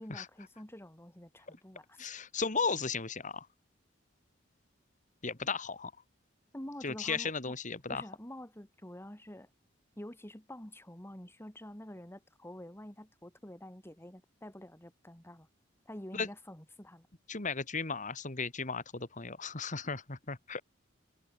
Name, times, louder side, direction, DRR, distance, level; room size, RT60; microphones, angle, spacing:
voice 1, 0.0-2.1 6.5-7.5 7.9-9.5 10.0-15.5 15.9-17.1, left 1 dB, 15° left, 2.4 m, -48 dB
voice 2, 2.0-3.5 5.2-5.9 6.8-8.0 16.1-16.3 17.3-20.6, left 4 dB, 40° left, 2.3 m, -35 dB
head